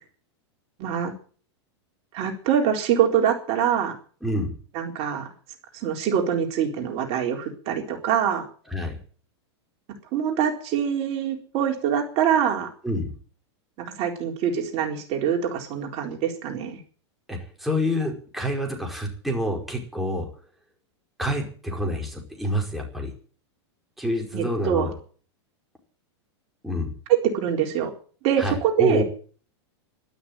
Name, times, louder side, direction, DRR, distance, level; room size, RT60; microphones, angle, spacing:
voice 1, 0.8-1.1 2.1-4.0 4.7-5.3 5.7-8.5 10.1-12.7 13.8-16.8 24.3-24.9 27.1-27.9 28.2-29.0, right 8 dB, 45° right, 2 dB, 4.2 m, -24 dB
voice 2, 4.2-4.5 8.7-9.0 12.8-13.1 17.3-20.2 21.2-23.1 24.0-25.0 26.6-26.9 28.4-29.0, equal, ahead, 0 dB, 4.9 m, -27 dB
12.5 x 12.5 x 9.0 m, 0.42 s
hypercardioid pair, 120°, 15 cm